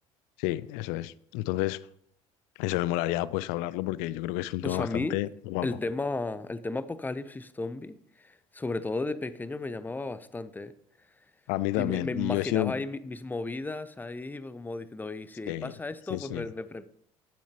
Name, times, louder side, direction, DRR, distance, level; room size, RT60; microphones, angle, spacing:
voice 1, 0.4-1.8 2.6-5.7 11.5-12.8 15.5-15.7 16.1-16.5, left 17 dB, 60° left, 0.4 m, -30 dB
voice 2, 4.6-5.2 5.6-10.7 11.7-16.9, left 2 dB, 10° left, 0.6 m, -34 dB
10.5 x 10.0 x 3.0 m
figure-of-eight pair, 60°, 17 cm